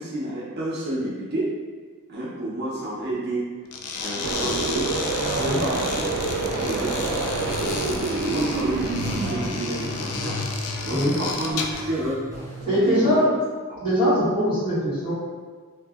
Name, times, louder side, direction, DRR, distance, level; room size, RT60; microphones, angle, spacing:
voice 1, 0.0-1.5 2.1-3.5 4.0-4.9 5.3-6.0 6.6-7.2 7.5-10.4 10.8-12.2 12.6-13.2 13.7-13.8, right 1 dB, 45° right, -7 dB, 0.6 m, -30 dB
sound 1, 3.7-11.9, left 4 dB, 85° left, 0.3 m, -32 dB
sound 2, 3.9-12.7, equal, 15° left, 1.1 m, -39 dB
sound 3, 4.2-9.5, right 3 dB, 80° right, 0.3 m, -27 dB
voice 2, 12.6-13.3 13.8-15.1, equal, 40° left, -13 dB, 1.5 m, -22 dB
2.6 x 2.5 x 2.3 m, 1.5 s
head